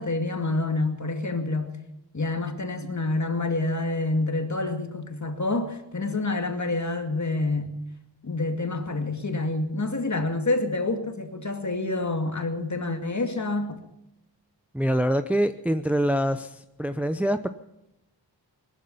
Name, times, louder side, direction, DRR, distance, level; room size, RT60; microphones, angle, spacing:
voice 1, 0.0-1.7 2.1-7.8 8.2-13.8, left 2 dB, 40° left, 2.4 m, -27 dB
voice 2, 14.7-17.5, equal, 5° right, 0.7 m, -25 dB
19.0 x 13.0 x 5.6 m
cardioid pair, 65°, 43 cm